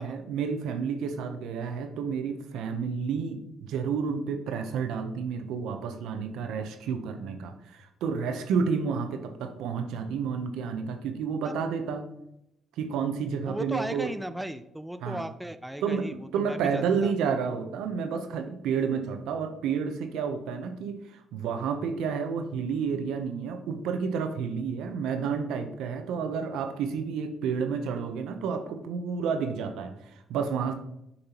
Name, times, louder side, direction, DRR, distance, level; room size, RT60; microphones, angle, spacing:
voice 1, 0.0-12.1 12.8-14.1 15.0-15.2 15.8-30.7, right 6 dB, 90° right, 7 dB, 0.7 m, -30 dB
voice 2, 13.5-17.1, right 1 dB, 5° right, 10 dB, 0.4 m, -36 dB
6.8 x 5.3 x 2.9 m, 0.82 s
cardioid pair, 90°, 0 cm